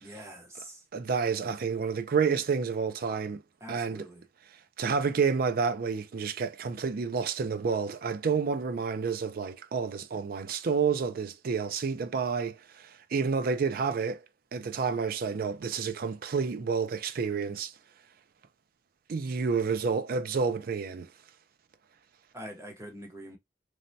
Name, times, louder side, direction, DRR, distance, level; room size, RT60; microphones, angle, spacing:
voice 1, 0.0-0.8 3.6-4.2 22.3-23.4, right 1 dB, 15° right, 0.8 m, -44 dB
voice 2, 0.9-3.4 3.7-4.1 4.8-14.2 14.5-17.7 19.1-21.1, right 5 dB, 50° right, 0.4 m, -29 dB
3.2 x 2.2 x 2.6 m
head